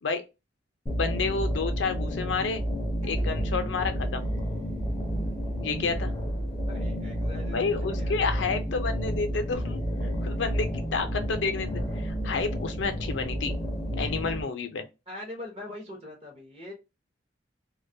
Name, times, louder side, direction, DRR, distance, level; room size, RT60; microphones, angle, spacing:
sound 1, 0.9-14.4, equal, 20° left, 0.5 m, -30 dB
voice 1, 1.0-2.6 3.0-4.2 5.6-6.1 7.5-13.6 14.0-14.8, left 4 dB, 75° left, 0.5 m, -30 dB
voice 2, 3.0-3.4 6.7-8.5 10.2-10.5 15.1-16.7, left 1 dB, 30° right, 0.7 m, -43 dB
2.2 x 2.1 x 2.6 m
head